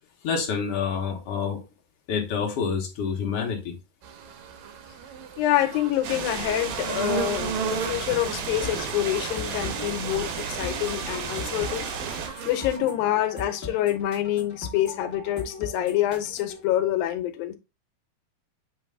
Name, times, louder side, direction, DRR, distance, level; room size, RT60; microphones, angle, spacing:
voice 1, 0.2-1.6 2.1-3.8, left 6 dB, 55° left, 1.9 m, -27 dB
sound 1, 4.0-12.8, right 6 dB, 70° right, 2.0 m, -36 dB
voice 2, 5.4-11.9 12.2-17.6, left 13 dB, 85° left, 2.5 m, -26 dB
sound 2, 6.0-12.3, right 6 dB, 85° right, 2.9 m, -33 dB
sound 3, 8.6-16.6, left 3 dB, 35° left, 1.7 m, -40 dB
8.4 x 3.2 x 3.5 m
omnidirectional pair, 4.1 m